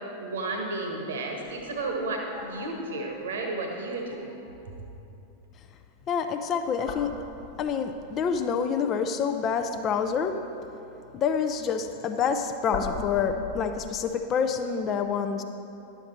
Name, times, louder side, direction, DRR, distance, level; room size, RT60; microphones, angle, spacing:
voice 1, 0.2-4.3, right 2 dB, 65° right, 2 dB, 1.2 m, -32 dB
sound 1, 1.4-4.9 6.7-8.3 11.7-14.1, left 4 dB, 50° left, 1.2 m, -41 dB
voice 2, 6.1-7.1 7.6-10.3 11.1-15.4, left 6 dB, 30° left, 7 dB, 0.5 m, -27 dB
11.0 x 7.1 x 4.4 m, 2.9 s
figure-of-eight pair, 90°, 0 cm